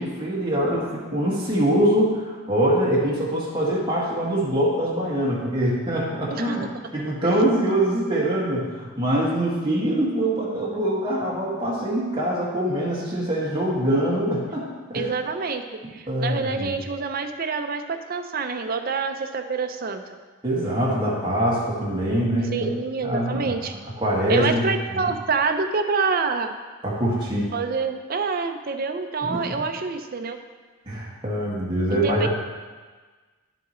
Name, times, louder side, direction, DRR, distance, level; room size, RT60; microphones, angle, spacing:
voice 1, 0.0-6.7 6.9-15.1 15.8-16.7 20.4-22.7 23.0-23.5 24.0-24.7 25.0-25.1 26.8-27.5 29.2-29.4 30.9-32.3, right 1 dB, 20° right, -6 dB, 1.9 m, -24 dB
voice 2, 6.3-6.7 14.9-15.6 15.9-20.0 22.5-23.8 24.3-26.5 27.5-30.4 31.9-32.3, right 4 dB, 45° right, 6 dB, 0.6 m, -27 dB
10.5 x 7.6 x 3.1 m, 1.4 s
head